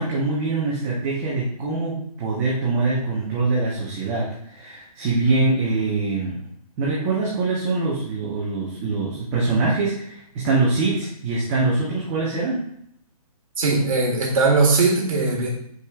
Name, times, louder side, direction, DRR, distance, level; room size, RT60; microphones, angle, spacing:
voice 1, 0.0-6.4 6.8-12.6, right 3 dB, 20° right, -5 dB, 1.0 m, -23 dB
voice 2, 13.6-15.5, right 3 dB, 60° right, -3 dB, 1.7 m, -19 dB
8.1 x 5.3 x 2.4 m, 0.72 s
hypercardioid pair, 155°, 19 cm